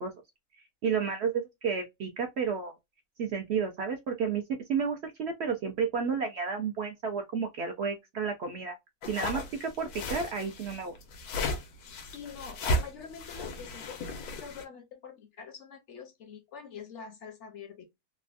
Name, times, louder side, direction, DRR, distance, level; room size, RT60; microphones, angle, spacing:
voice 1, 0.8-2.7 3.2-4.4 4.7-8.7 9.1-11.0, right 6 dB, 65° right, 0.7 m, -31 dB
sound 1, 9.0-14.6, left 1 dB, 90° left, 1.2 m, -35 dB
voice 2, 11.7-17.8, left 6 dB, 65° left, 0.8 m, -46 dB
3.3 x 2.1 x 2.3 m
omnidirectional pair, 1.6 m